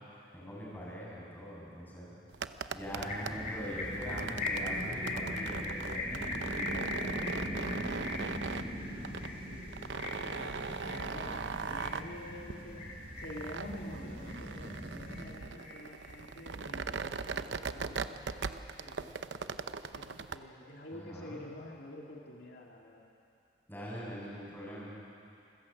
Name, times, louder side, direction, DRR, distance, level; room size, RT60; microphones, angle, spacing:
voice 1, 0.3-2.1 2.7-7.9 20.9-21.4 23.7-25.0, equal, 10° left, -6 dB, 7.7 m, -43 dB
sound 1, 2.3-20.4, right 5 dB, 85° right, 0.7 m, -40 dB
sound 2, 2.8-15.3, equal, 35° right, 4.3 m, -42 dB
sound 3, 3.1-12.4 12.8-13.5 13.9-14.8 15.1-16.4, left 2 dB, 45° left, 4.2 m, -40 dB
voice 2, 6.1-6.4 8.9-12.9 13.2-19.2 19.9-23.1, left 1 dB, 65° left, -1 dB, 2.1 m, -49 dB
27.5 x 15.0 x 8.4 m, 2.6 s
head